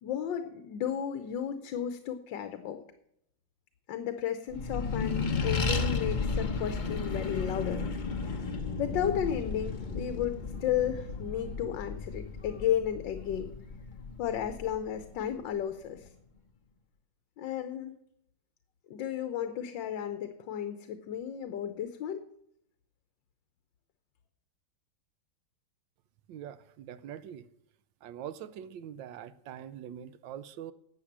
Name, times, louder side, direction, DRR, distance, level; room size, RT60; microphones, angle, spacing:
voice 1, 0.0-2.8 3.9-7.8 8.8-13.5 14.2-16.1 17.4-17.9 18.9-22.2, left 9 dB, 80° left, 1.5 m, -33 dB
Accelerating revving vroom, 4.5-15.4, left 4 dB, 35° left, 0.8 m, -34 dB
voice 2, 26.3-27.5 28.0-30.7, right 10 dB, 85° right, 1.4 m, -43 dB
12.0 x 8.0 x 7.4 m
omnidirectional pair, 2.0 m